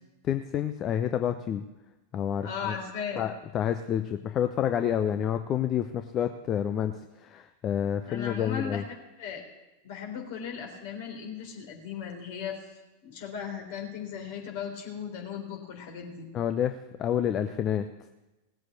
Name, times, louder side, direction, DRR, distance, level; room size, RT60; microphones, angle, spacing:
voice 1, 0.2-1.6 2.1-2.7 3.2-6.9 7.2-8.8 16.3-17.9, left 9 dB, 30° left, 9 dB, 0.7 m, -29 dB
voice 2, 2.4-3.3 8.0-8.8 9.2-9.4 9.8-12.6 13.0-16.3, left 7 dB, 50° left, 2 dB, 3.9 m, -37 dB
18.5 x 7.7 x 8.3 m, 1.1 s
figure-of-eight pair, 90°, 0 cm